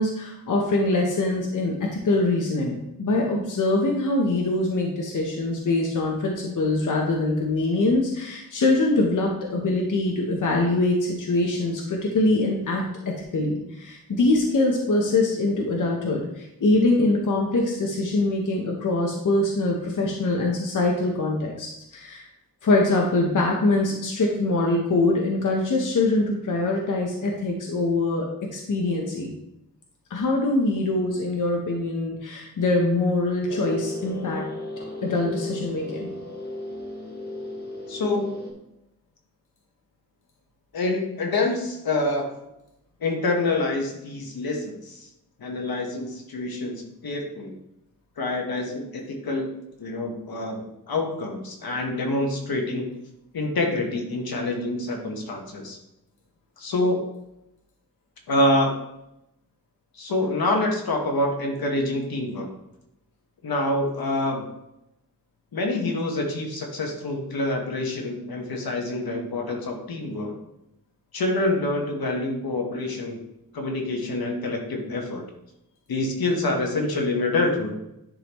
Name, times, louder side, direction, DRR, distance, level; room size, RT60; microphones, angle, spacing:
voice 1, 0.0-22.3 22.6-28.3 28.5-29.3 30.1-34.4 35.0-36.1, left 2 dB, 60° left, 0 dB, 0.9 m, -23 dB
sound 1, 33.5-38.5, left 2 dB, 25° left, 1.2 m, -35 dB
voice 2, 37.9-38.3 40.7-42.2 43.0-45.1 45.4-47.5 48.2-52.9 53.3-55.8 56.6-57.1 58.3-58.7 59.9-62.5 63.4-64.5 65.5-70.3 71.1-73.2 73.5-75.2 75.9-77.7, left 2 dB, 80° left, 1 dB, 1.3 m, -26 dB
10.0 x 3.9 x 3.0 m, 0.85 s
wide cardioid pair, 175°, 36 cm